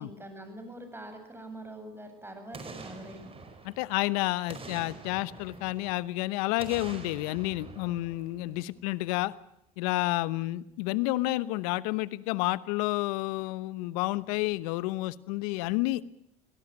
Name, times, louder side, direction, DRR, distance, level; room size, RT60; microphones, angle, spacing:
voice 1, 0.0-3.3, right 1 dB, 10° right, 7 dB, 7.9 m, -44 dB
Boom, 2.5-4.0 4.5-6.1 6.6-8.8 9.2-9.3, right 4 dB, 30° right, 4.9 m, -46 dB
voice 2, 3.6-9.3 9.8-16.0, left 19 dB, 75° left, 18 dB, 1.0 m, -30 dB
25.5 x 18.0 x 8.9 m, 0.78 s
hypercardioid pair, 75°, 19 cm